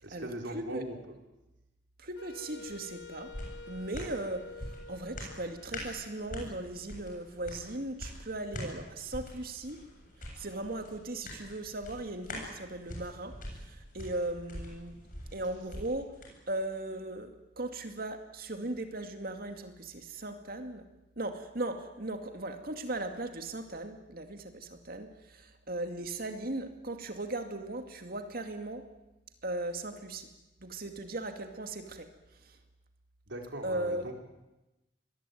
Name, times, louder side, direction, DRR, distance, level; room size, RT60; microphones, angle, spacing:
voice 1, 0.0-1.2 15.4-15.6 33.3-34.1, right 1 dB, 80° right, 2 dB, 4.0 m, -40 dB
voice 2, 2.0-3.3 3.7-9.8 10.4-15.0 15.3-16.1 16.5-20.9 21.2-28.8 29.4-30.3 30.6-32.1 32.4-32.6 33.6-34.0, right 2 dB, 50° right, 6 dB, 2.4 m, -38 dB
Wind instrument woodwind instrument, 2.1-7.1, left 3 dB, 65° left, 1.1 m, -49 dB
sound 1, 2.7-16.3 16.7-16.8, left 1 dB, 45° left, 7.5 m, -44 dB
25.0 x 20.5 x 9.4 m, 1.0 s
head